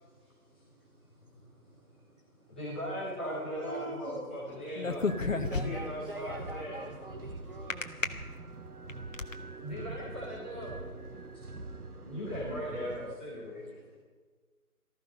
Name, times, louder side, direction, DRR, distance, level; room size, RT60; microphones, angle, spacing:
voice 1, 1.2-2.6 3.5-4.2 8.0-9.7 11.2-11.3 11.8-12.1, right 1 dB, 20° right, -6 dB, 4.1 m, -47 dB
voice 2, 2.5-5.1 5.5-6.8 9.6-10.8 11.3-11.4 12.0-14.0, equal, 5° left, -12 dB, 1.3 m, -39 dB
sound 1, 4.8-6.0 7.7-8.1 8.7-9.3, left 4 dB, 55° left, 1.2 m, -31 dB
sound 2, 5.1-13.1, right 3 dB, 75° right, 1.4 m, -44 dB
voice 3, 5.4-7.9, right 2 dB, 40° right, 7 dB, 0.7 m, -44 dB
18.5 x 14.0 x 5.2 m, 1.5 s
figure-of-eight pair, 160°, 45 cm